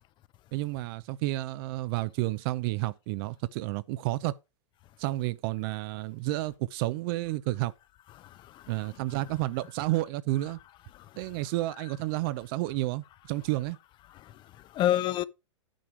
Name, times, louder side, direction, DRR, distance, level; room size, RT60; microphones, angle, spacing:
voice 1, 0.5-4.4 5.0-7.7 8.7-10.6 11.2-13.8, right 18 dB, 50° right, 0.5 m, -31 dB
voice 2, 8.1-9.0 10.9-11.5 14.1-15.2, left 12 dB, 30° left, 0.6 m, -32 dB
9.3 x 6.3 x 4.5 m
hypercardioid pair, 110°, 15 cm